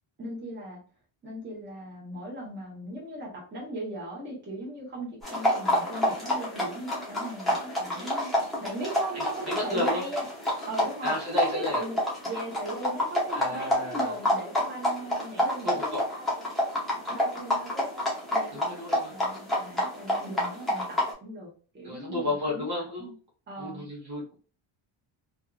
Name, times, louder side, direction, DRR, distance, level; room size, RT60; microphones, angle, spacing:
voice 1, 0.2-0.8 1.2-10.3 10.7-11.1 11.5-16.4 17.1-18.6 19.1-22.7 23.0-23.1 23.5-23.9, right 1 dB, 20° right, -4 dB, 1.0 m, -38 dB
sound 1, 5.2-21.1, left 1 dB, ahead, 0.7 m, -29 dB
voice 2, 9.1-10.1 11.0-11.8 13.3-14.1 15.6-16.0 18.5-19.1 21.8-23.1 23.6-24.4, left 1 dB, 50° right, -2 dB, 1.0 m, -32 dB
2.6 x 2.4 x 2.3 m, 0.39 s
cardioid pair, 175°, 49 cm